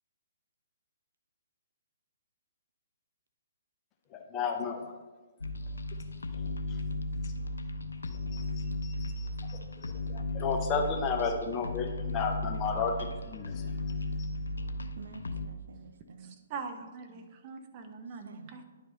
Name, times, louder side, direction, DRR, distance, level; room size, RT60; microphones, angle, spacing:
voice 1, 4.3-4.8 8.1-13.6 14.2-14.3, left 5 dB, 25° left, 2 dB, 0.9 m, -33 dB
sound 1, 5.4-15.5, left 1 dB, 75° left, 0.5 m, -35 dB
voice 2, 15.0-16.4 18.2-18.6, right 5 dB, 65° right, 7 dB, 0.6 m, -48 dB
voice 3, 16.2-18.6, right 5 dB, 30° right, 5 dB, 0.8 m, -43 dB
10.0 x 4.8 x 3.9 m, 1.3 s
figure-of-eight pair, 125°, 0 cm